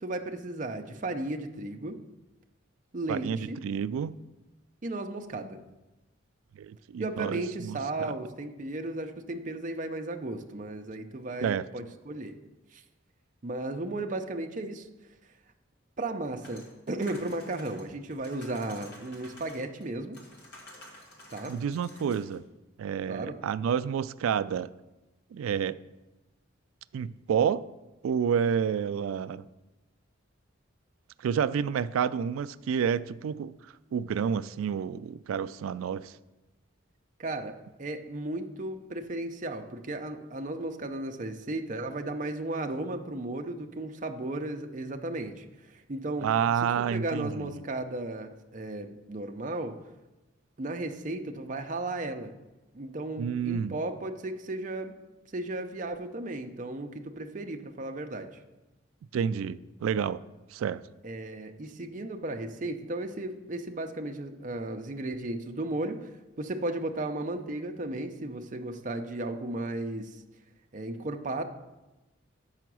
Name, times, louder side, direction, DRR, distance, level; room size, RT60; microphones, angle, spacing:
voice 1, 0.0-2.0 2.9-3.6 4.8-5.6 7.0-12.4 12.7-12.8 13.4-14.9 16.0-20.2 21.3-21.6 23.1-23.4 37.2-46.3 46.8-49.8 50.6-52.3 52.7-54.9 55.3-58.3 61.0-66.1 66.4-70.2 70.7-71.4, right 2 dB, 40° right, 6 dB, 0.5 m, -35 dB
voice 2, 3.1-4.2 6.6-8.1 11.4-11.7 21.5-22.4 22.8-24.7 25.3-25.8 26.9-27.6 28.0-29.4 31.2-33.5 33.9-36.1 46.2-47.5 53.2-53.8 59.1-60.2 60.5-60.8, right 7 dB, 90° right, 17 dB, 0.3 m, -29 dB
sound 1, 16.4-19.9 20.1-22.4, left 1 dB, 50° left, 1.7 m, -51 dB
6.9 x 5.7 x 6.1 m, 1.0 s
head